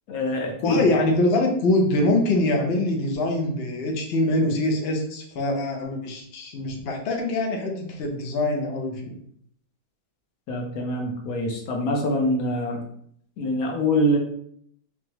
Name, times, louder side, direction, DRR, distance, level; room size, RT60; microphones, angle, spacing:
voice 1, 0.1-0.8 10.5-12.8 13.4-14.2, left 1 dB, 60° left, 1 dB, 1.1 m, -24 dB
voice 2, 0.6-9.2, left 1 dB, 85° left, 2 dB, 0.5 m, -24 dB
3.6 x 3.2 x 2.9 m, 0.67 s
omnidirectional pair, 2.0 m